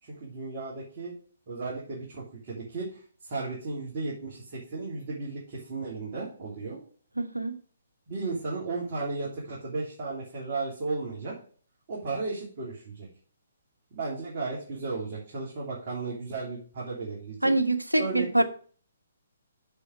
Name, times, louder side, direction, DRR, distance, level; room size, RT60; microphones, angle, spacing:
voice 1, 0.0-1.1 1.5-6.8 8.1-11.3 11.9-13.1 13.9-17.5 17.9-18.4, right 3 dB, 40° right, 3.2 m, -35 dB
voice 2, 7.2-7.6 17.4-18.4, right 2 dB, 90° right, 1.2 m, -24 dB
7.0 x 6.9 x 4.7 m
figure-of-eight pair, 130°, 0 cm